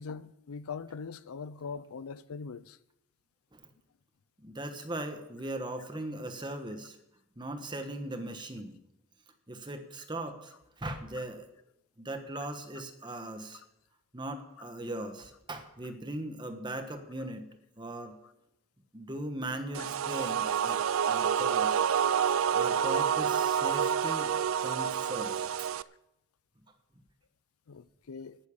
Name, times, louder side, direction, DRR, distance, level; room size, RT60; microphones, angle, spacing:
voice 1, 0.0-2.8 27.7-28.4, left 5 dB, 80° left, 0.5 m, -41 dB
voice 2, 4.4-7.0 7.4-8.8 9.5-11.5 12.0-13.6 14.1-17.5 17.8-18.2 18.9-21.8 22.5-24.3 24.6-25.7, right 1 dB, 20° right, 1.2 m, -39 dB
sound 1, 19.7-25.8, right 8 dB, 70° right, 0.4 m, -28 dB
10.5 x 9.9 x 7.2 m
head